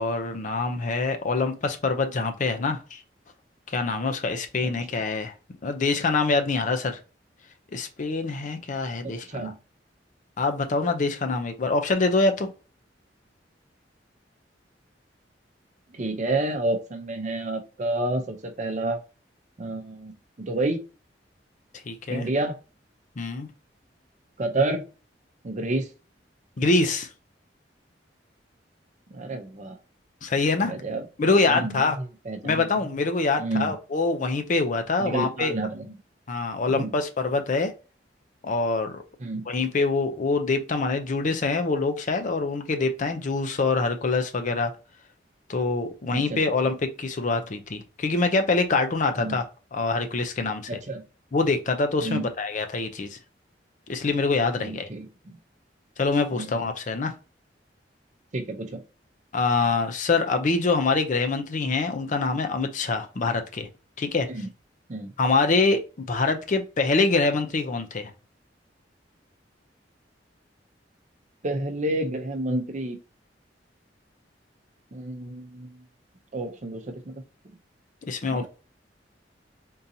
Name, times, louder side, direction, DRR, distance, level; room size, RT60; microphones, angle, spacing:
voice 1, 0.0-3.0 3.7-5.3 5.6-7.0 7.7-9.5 10.4-12.5 21.9-22.3 23.2-23.5 26.6-27.1 30.2-30.7 31.2-32.0 32.4-35.5 36.3-37.7 38.4-39.0 39.5-44.7 45.5-49.5 49.7-50.6 51.3-53.2 53.9-54.9 56.0-57.1 59.3-63.7 64.0-64.3 65.2-68.1 78.1-78.5, left 3 dB, 45° left, 0.5 m, -25 dB
voice 2, 9.0-9.6 15.9-19.0 19.6-20.8 22.1-22.6 24.4-24.8 25.4-25.9 29.1-29.8 30.7-32.7 33.4-33.8 35.0-35.9 36.7-36.9 39.2-39.5 46.1-46.4 49.2-49.4 50.7-51.0 52.0-52.3 54.6-55.4 56.4-56.6 58.3-58.8 64.3-64.5 64.9-65.1 71.4-73.0 74.9-75.8 76.3-77.2 78.3-78.5, right 2 dB, 40° right, 0.6 m, -30 dB
3.7 x 2.7 x 2.7 m
head